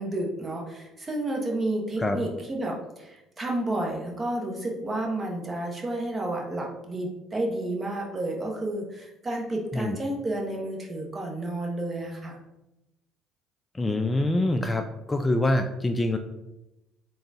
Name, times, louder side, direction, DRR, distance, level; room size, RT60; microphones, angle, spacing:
voice 1, 0.0-12.4, right 1 dB, 25° right, 0 dB, 1.0 m, -31 dB
voice 2, 13.7-14.8 15.1-16.2, left 1 dB, 20° left, 6 dB, 0.3 m, -25 dB
3.7 x 2.3 x 4.0 m, 0.95 s
supercardioid pair, 70°, 0 cm